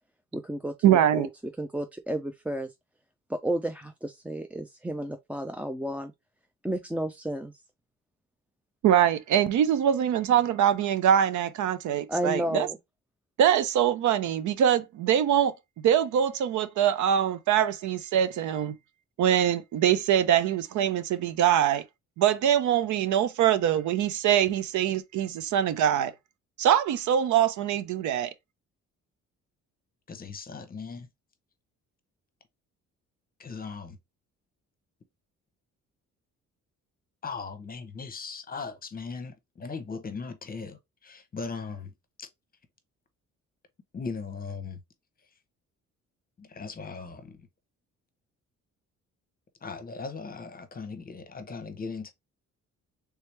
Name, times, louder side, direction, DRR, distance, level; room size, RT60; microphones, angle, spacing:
voice 1, 0.3-1.3 1.6-2.7 3.3-6.1 6.6-7.5 12.1-12.8, right 1 dB, 5° right, 0.4 m, -32 dB
voice 2, 0.8-1.3 8.8-12.7 13.4-15.5 15.8-18.7 19.2-21.8 22.2-26.1 26.6-28.3, right 10 dB, 75° right, 0.6 m, -23 dB
voice 3, 30.1-31.1 33.4-34.0 37.2-41.9 42.2-42.3 43.9-44.8 46.4-47.4 49.6-52.1, left 4 dB, 30° left, 0.8 m, -38 dB
3.4 x 3.0 x 3.2 m
cardioid pair, 90°, 30 cm